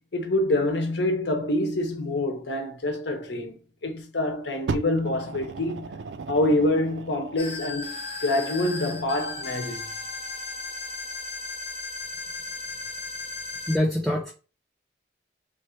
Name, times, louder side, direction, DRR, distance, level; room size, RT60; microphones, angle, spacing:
voice 1, 0.1-5.9 6.3-9.8, left 1 dB, 70° left, 0.9 m, -26 dB
Fire, 4.7-7.5 8.3-8.4, right 4 dB, 70° right, 0.4 m, -35 dB
sound 1, 7.4-13.8, left 3 dB, 30° left, 0.7 m, -36 dB
voice 2, 13.7-14.3, left 1 dB, ahead, 0.4 m, -24 dB
3.2 x 2.6 x 4.3 m
head